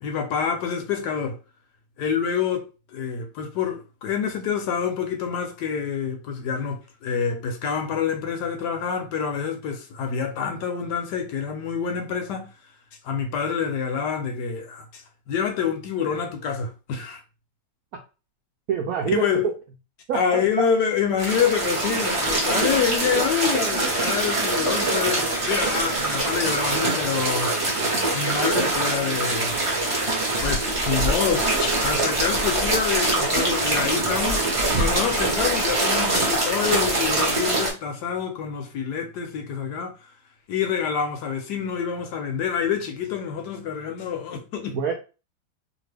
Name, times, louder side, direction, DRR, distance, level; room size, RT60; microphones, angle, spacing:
voice 1, 0.0-1.4 2.0-2.7 2.9-12.5 13.0-17.2 19.1-19.5 20.1-27.5 28.1-29.6 30.4-39.9 40.5-44.8, left 7 dB, 75° left, 1.1 m, -27 dB
voice 2, 18.7-19.3 20.1-20.4 44.7-44.9, right 7 dB, 80° right, 0.8 m, -25 dB
sound 1, 21.2-37.7, right 2 dB, 30° right, 0.6 m, -23 dB
2.9 x 2.4 x 3.2 m
omnidirectional pair, 2.0 m